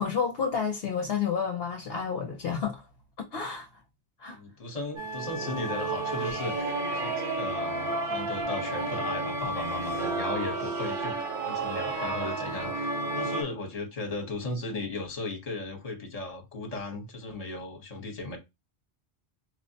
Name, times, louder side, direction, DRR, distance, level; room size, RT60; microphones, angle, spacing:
voice 1, 0.0-2.8 3.2-3.7 4.2-4.4, left 6 dB, 65° left, 0.8 m, -30 dB
voice 2, 4.3-18.4, left 2 dB, 35° left, 1.0 m, -36 dB
sound 1, 5.0-13.4, right 2 dB, 55° right, 1.0 m, -31 dB
4.4 x 2.0 x 2.7 m
omnidirectional pair, 1.1 m